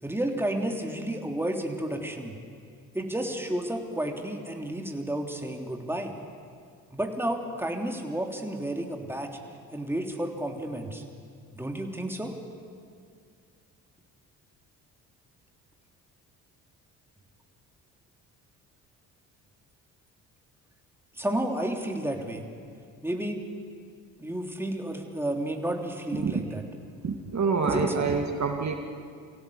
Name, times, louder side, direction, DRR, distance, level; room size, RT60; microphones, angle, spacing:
voice 1, 0.0-2.3 2.9-6.1 6.9-9.4 9.7-11.0 11.5-12.3 21.2-22.4 23.0-23.4 24.2-26.6 27.7-28.0, right 1 dB, 5° right, 2 dB, 3.2 m, -31 dB
voice 2, 27.0-28.8, right 4 dB, 40° right, 3 dB, 2.3 m, -27 dB
24.5 x 17.0 x 8.6 m, 2.2 s
hypercardioid pair, 55°, 41 cm